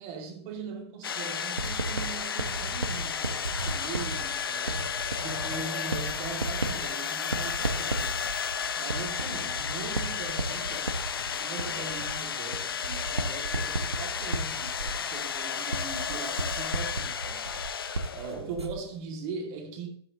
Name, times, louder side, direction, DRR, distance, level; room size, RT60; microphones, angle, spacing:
voice 1, 0.0-8.2 8.8-10.9 11.2-17.5 18.1-19.9, right 4 dB, 30° right, 2.1 m, -40 dB
sound 1, 1.0-18.6, left 7 dB, 55° left, 0.8 m, -33 dB
Writing, 1.6-18.9, right 2 dB, 75° right, 1.3 m, -35 dB
sound 2, 2.8-16.5, left 5 dB, 30° left, 4.4 m, -56 dB
13.0 x 8.5 x 2.8 m
figure-of-eight pair, 115°, 14 cm